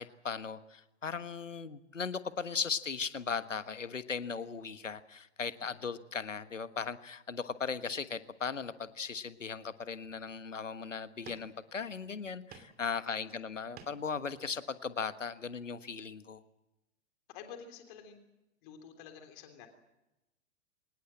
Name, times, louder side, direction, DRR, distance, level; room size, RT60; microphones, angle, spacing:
voice 1, 0.0-16.4, left 5 dB, 80° left, 13 dB, 1.4 m, -38 dB
sound 1, 8.5-9.2 9.7-9.8 10.2-10.6 11.2-11.9 12.2-12.9 13.2-14.2, right 7 dB, 25° right, 2.8 m, -55 dB
voice 2, 13.0-13.4 17.3-18.2 18.6-19.7, left 7 dB, 40° left, 6 dB, 3.4 m, -50 dB
25.0 x 19.5 x 7.7 m, 0.95 s
figure-of-eight pair, 105°, 38 cm